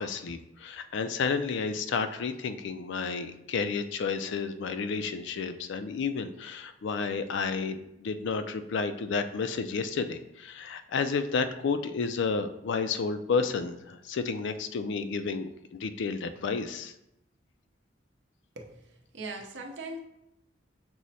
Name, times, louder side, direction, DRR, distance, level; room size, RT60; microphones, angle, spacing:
voice 1, 0.0-16.9, left 5 dB, 65° left, 10 dB, 0.4 m, -31 dB
voice 2, 18.6-20.0, right 2 dB, 65° right, 1 dB, 0.7 m, -40 dB
6.1 x 2.1 x 4.0 m, 0.86 s
head